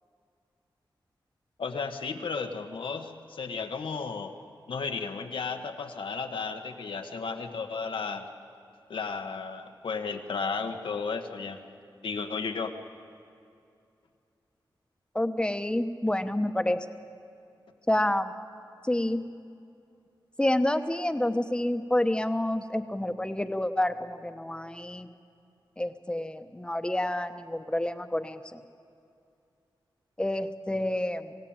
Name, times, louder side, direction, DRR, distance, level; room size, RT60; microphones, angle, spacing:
voice 1, 1.6-4.3 4.7-8.2 8.9-11.6 12.0-12.7, left 5 dB, 85° left, 5 dB, 1.4 m, -34 dB
voice 2, 15.1-16.8 17.9-18.3 18.8-19.2 20.4-25.1 25.8-28.6 30.2-31.3, left 1 dB, 10° left, 9 dB, 1.0 m, -28 dB
25.5 x 16.5 x 8.8 m, 2.6 s
wide cardioid pair, 85°, 8 cm